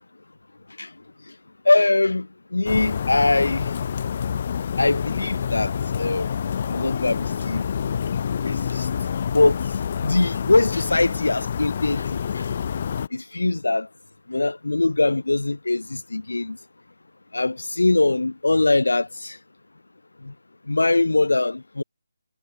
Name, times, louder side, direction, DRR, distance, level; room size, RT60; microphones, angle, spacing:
voice 1, 1.6-3.7 4.8-5.7 6.0-6.3 6.7-7.6 8.4-8.9 9.3-9.6 10.0-12.4 13.1-13.9 14.3-16.6 17.3-19.4 20.2-20.3 20.7-21.8, left 2 dB, 80° left, 1.0 m, -22 dB
sound 1, 2.7-13.1, left 7 dB, 40° left, 0.7 m, -27 dB
figure-of-eight pair, 155°, 0 cm